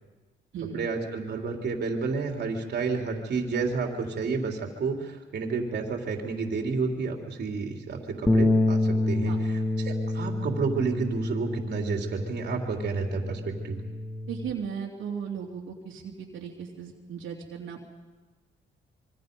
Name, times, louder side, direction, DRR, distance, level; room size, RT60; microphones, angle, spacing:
voice 1, 0.7-13.8, right 4 dB, 55° right, 2 dB, 3.5 m, -30 dB
Bass guitar, 8.3-14.5, left 2 dB, 15° left, 2.1 m, -28 dB
voice 2, 14.3-17.8, right 7 dB, 75° right, -2 dB, 3.2 m, -36 dB
26.5 x 23.5 x 5.4 m, 1.3 s
cardioid pair, 90°, 20 cm